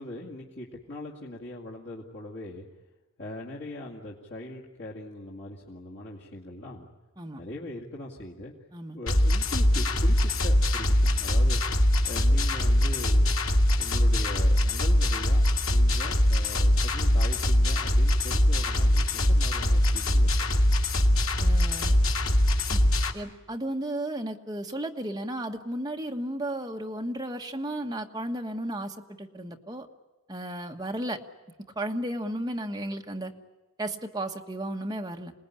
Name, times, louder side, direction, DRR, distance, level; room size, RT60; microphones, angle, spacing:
voice 1, 0.0-2.7 3.2-6.9 7.4-8.5 8.9-11.6 12.1-13.3 13.8-20.7, left 1 dB, 55° left, -4 dB, 2.3 m, -41 dB
sound 1, 9.1-23.1, left 1 dB, 80° left, 2.0 m, -22 dB
voice 2, 21.4-22.0 22.7-22.8 23.1-29.9 30.3-31.2 31.7-33.3 33.8-35.3, right 1 dB, 20° right, 3 dB, 1.4 m, -34 dB
27.0 x 19.5 x 10.0 m, 1.2 s
head